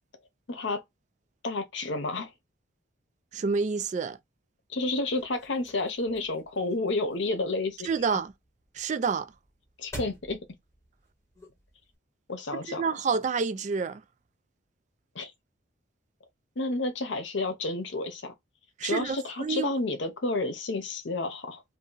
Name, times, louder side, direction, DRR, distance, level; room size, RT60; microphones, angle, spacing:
voice 1, 0.5-0.8 1.4-2.3 4.7-8.2 9.8-10.4 12.3-12.8 15.1-15.3 16.6-18.3 18.8-21.6, left 2 dB, 65° left, 0.8 m, -30 dB
voice 2, 3.3-4.2 7.9-8.3 8.8-9.3 12.8-14.0 18.8-19.7, right 5 dB, 40° right, 0.3 m, -28 dB
sound 1, 4.9-12.0, right 1 dB, 15° left, 1.5 m, -49 dB
2.7 x 2.7 x 3.8 m
head